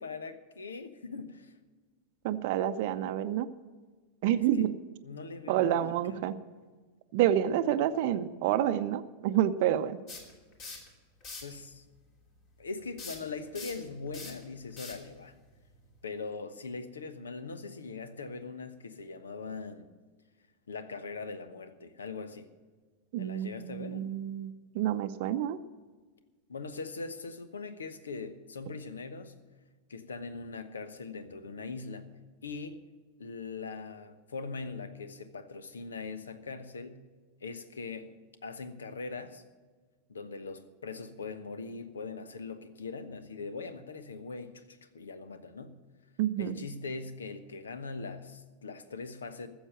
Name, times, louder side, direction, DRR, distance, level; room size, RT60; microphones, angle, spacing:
voice 1, 0.0-1.5 4.5-4.7 5.0-6.2 11.4-11.8 12.6-15.3 16.0-19.9 20.7-22.5 23.2-24.1 26.5-29.3 29.9-32.1 32.4-32.8 33.2-37.0 37.4-38.1 38.4-39.4 40.1-45.7 46.4-49.5, left 4 dB, 70° left, 11 dB, 1.1 m, -41 dB
voice 2, 2.2-3.5 4.2-4.7 5.5-6.3 7.1-10.0 23.1-25.6 46.2-46.6, right 11 dB, 50° right, 11 dB, 0.7 m, -28 dB
sound 1, 10.1-10.9 11.2-11.6 13.0-16.0, left 3 dB, 40° left, 3.0 m, -44 dB
14.5 x 7.2 x 9.0 m, 1.4 s
figure-of-eight pair, 90°, 0 cm